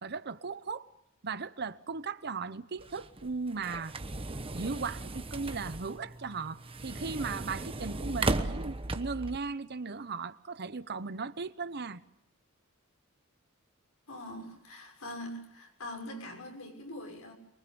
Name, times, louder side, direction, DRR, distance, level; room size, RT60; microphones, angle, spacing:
voice 1, 0.0-0.9 1.2-4.0 4.5-12.0, right 4 dB, 50° right, 0.9 m, -37 dB
sound 1, 2.8-9.4, right 2 dB, 25° right, 1.1 m, -36 dB
voice 2, 14.1-17.3, left 1 dB, 80° left, 6.7 m, -43 dB
24.0 x 23.0 x 7.0 m
head